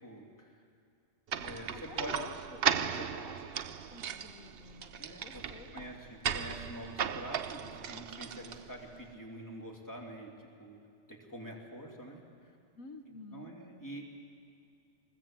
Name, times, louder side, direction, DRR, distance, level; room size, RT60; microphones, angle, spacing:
voice 1, 0.0-0.6 1.4-2.1 3.0-3.1 5.0-5.4 5.7-10.8 11.1-12.5 13.3-14.0, equal, 15° left, 0 dB, 2.9 m, -46 dB
sound 1, 1.3-8.9, right 8 dB, 55° right, 0.8 m, -36 dB
voice 2, 1.7-2.6 3.1-3.5 3.9-5.8 12.7-13.6, left 4 dB, 85° left, 7 dB, 1.6 m, -50 dB
22.0 x 21.5 x 7.6 m, 2.5 s
omnidirectional pair, 1.4 m